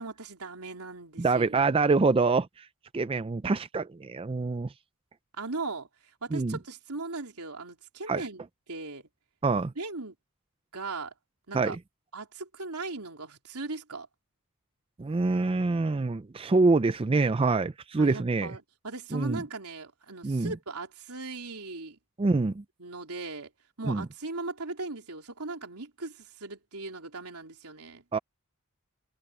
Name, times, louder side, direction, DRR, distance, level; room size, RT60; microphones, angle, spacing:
voice 1, 0.0-1.8 5.4-5.9 6.2-8.4 8.7-9.1 9.8-10.2 10.7-11.1 11.5-11.8 12.1-14.1 18.0-22.0 22.8-23.5 23.8-28.0, right 3 dB, 90° right, 3.6 m, -38 dB
voice 2, 1.2-2.7 2.9-4.7 6.3-6.6 8.1-8.2 9.4-9.7 11.5-11.8 15.0-18.5 19.1-19.4 20.2-20.5 22.2-22.6 23.9-24.1 28.1-28.2, right 3 dB, 25° right, 0.4 m, -25 dB
head